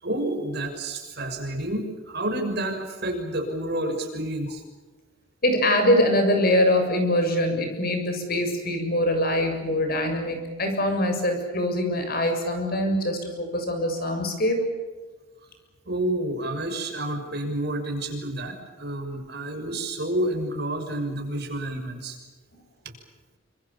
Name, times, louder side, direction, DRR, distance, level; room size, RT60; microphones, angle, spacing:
voice 1, 0.0-4.6 15.8-22.2 22.8-22.9, right 1 dB, 50° right, 4 dB, 6.3 m, -29 dB
voice 2, 5.4-14.7, left 1 dB, 45° left, 5 dB, 7.0 m, -23 dB
28.0 x 26.0 x 7.1 m, 1.3 s
head